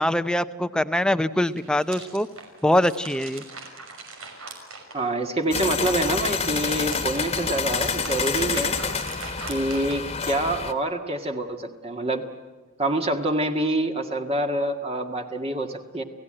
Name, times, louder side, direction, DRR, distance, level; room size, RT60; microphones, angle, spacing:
voice 1, 0.0-2.3 2.6-3.4, left 1 dB, 5° left, 12 dB, 0.8 m, -23 dB
sound 1, 1.3-5.5 5.8-10.5, right 4 dB, 90° right, 5.8 m, -41 dB
voice 2, 4.9-8.8 9.5-12.2 12.8-16.0, right 1 dB, 30° right, 5 dB, 1.8 m, -26 dB
sound 2, 5.5-10.7, left 5 dB, 30° left, 1.5 m, -28 dB
29.0 x 17.0 x 8.8 m, 1.4 s
head